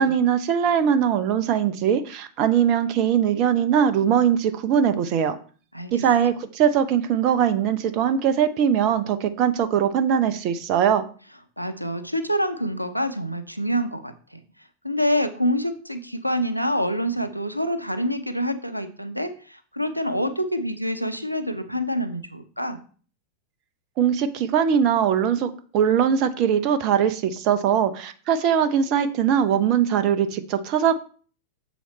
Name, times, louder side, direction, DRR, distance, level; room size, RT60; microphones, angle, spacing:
voice 1, 0.0-5.3 5.9-11.0 24.0-30.9, right 8 dB, 40° right, 11 dB, 0.6 m, -21 dB
voice 2, 5.7-6.1 11.6-14.4 14.8-22.8, equal, 90° right, 10 dB, 0.7 m, -26 dB
7.1 x 7.0 x 3.1 m, 0.41 s
figure-of-eight pair, 90°, 0 cm